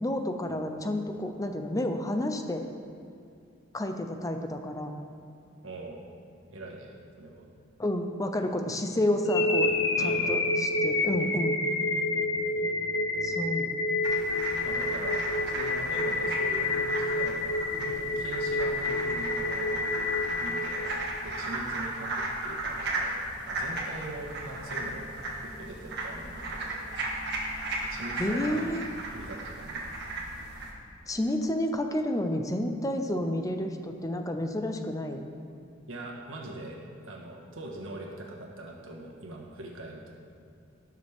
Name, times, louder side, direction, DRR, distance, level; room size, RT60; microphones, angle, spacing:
voice 1, 0.0-2.6 3.7-4.9 7.8-9.7 10.0-11.6 13.2-13.7 28.2-28.8 31.1-35.3, left 1 dB, 15° left, 5 dB, 0.6 m, -30 dB
voice 2, 5.6-6.1 6.5-7.5 10.0-10.5 12.6-13.3 14.6-17.4 17.7-19.7 20.4-20.9 21.2-23.2 23.5-25.1 25.4-26.8 27.2-27.3 27.9-28.6 29.1-29.9 35.9-36.8 37.1-40.0, right 1 dB, 90° right, -1 dB, 1.6 m, -42 dB
sound 1, 9.2-21.3, left 2 dB, 65° left, 1.0 m, -28 dB
sound 2, 14.0-30.7, right 2 dB, 60° right, 1.8 m, -35 dB
18.5 x 6.5 x 3.6 m, 2.4 s
head